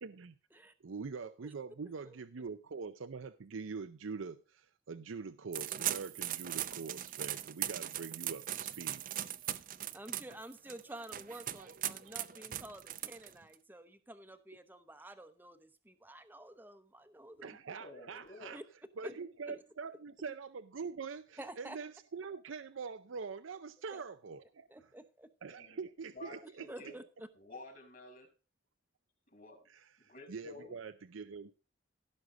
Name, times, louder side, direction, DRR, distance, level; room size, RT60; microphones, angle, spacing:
voice 1, 0.0-0.3 0.8-9.0 17.4-18.6 19.0-24.7 25.4-26.9 29.7-31.6, right 5 dB, 90° right, 0.6 m, -44 dB
sound 1, 5.5-13.5, right 12 dB, 45° right, 0.5 m, -39 dB
voice 2, 9.9-17.6 18.5-18.6 19.0-19.2 19.5-19.6 21.4-21.8 23.9-24.0 24.7-25.3 26.7-27.3, right 1 dB, 10° right, 0.8 m, -50 dB
voice 3, 17.5-18.6 25.5-25.8 26.1-27.0 27.4-28.3 29.3-29.6 30.0-30.8, left 2 dB, 45° left, 4.2 m, -51 dB
16.0 x 6.4 x 3.8 m
head